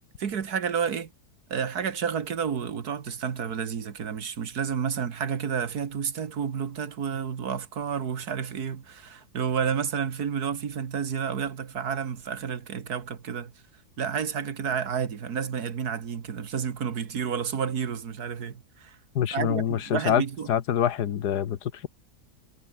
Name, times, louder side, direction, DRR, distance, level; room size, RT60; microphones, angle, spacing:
voice 1, 0.2-1.1 1.5-13.5 14.0-19.0 19.3-20.5, right 7 dB, 75° right, 2.1 m, -30 dB
voice 2, 19.1-20.2 20.5-21.9, left 9 dB, 90° left, 1.7 m, -25 dB
omnidirectional pair, 1.7 m